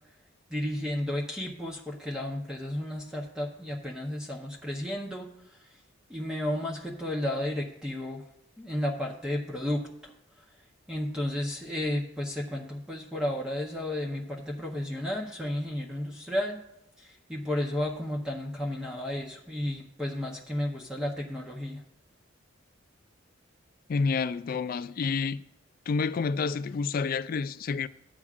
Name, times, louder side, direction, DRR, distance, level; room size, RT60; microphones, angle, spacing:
voice 1, 0.5-5.3 5.6-5.7 6.1-8.2 8.6-10.1 10.9-16.6 17.0-21.8, left 1 dB, 5° right, 0.8 m, -33 dB
voice 2, 23.9-25.4 25.9-27.9, left 5 dB, 45° left, 0.3 m, -29 dB
13.0 x 8.5 x 2.5 m
head